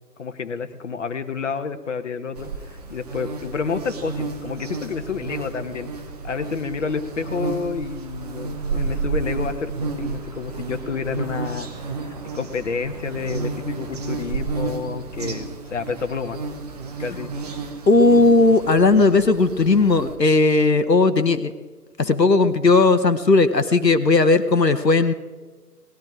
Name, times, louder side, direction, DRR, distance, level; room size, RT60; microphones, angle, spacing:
voice 1, 0.2-5.9 6.2-11.7 12.1-16.4 17.0-17.3, left 5 dB, 50° left, 8 dB, 1.4 m, -29 dB
sound 1, 2.3-20.2, right 4 dB, 25° right, 1.3 m, -31 dB
voice 2, 17.9-21.5 22.0-25.1, left 3 dB, 90° left, 10 dB, 1.2 m, -16 dB
18.5 x 12.0 x 4.9 m, 1.4 s
figure-of-eight pair, 145°, 48 cm